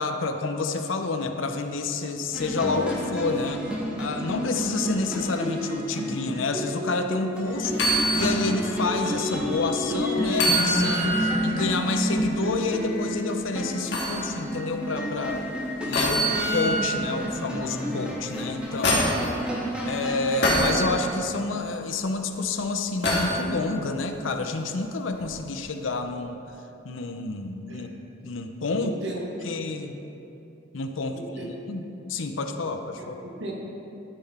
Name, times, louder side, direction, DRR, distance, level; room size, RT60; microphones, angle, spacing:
voice 1, 0.0-3.6 4.0-15.4 15.9-19.2 19.9-26.4 26.8-27.9 28.2-29.0 29.4-29.9 30.7-31.8 32.1-33.1, left 3 dB, 85° left, 6 dB, 0.6 m, -29 dB
sound 1, 2.3-21.1, equal, 5° right, 1.2 m, -30 dB
Bass guitar, 2.6-6.7, right 1 dB, 25° left, 0.7 m, -39 dB
sound 2, 7.7-8.4 8.8-8.9 10.3-11.3 13.9-14.2 15.9-16.9 18.3-19.3 20.4-20.8 23.0-23.4 25.2-25.3, equal, 60° left, 1.7 m, -24 dB
voice 2, 28.8-29.5 31.1-31.5 33.0-33.5, right 2 dB, 65° right, -2 dB, 1.6 m, -37 dB
12.0 x 6.0 x 4.3 m, 2.9 s
head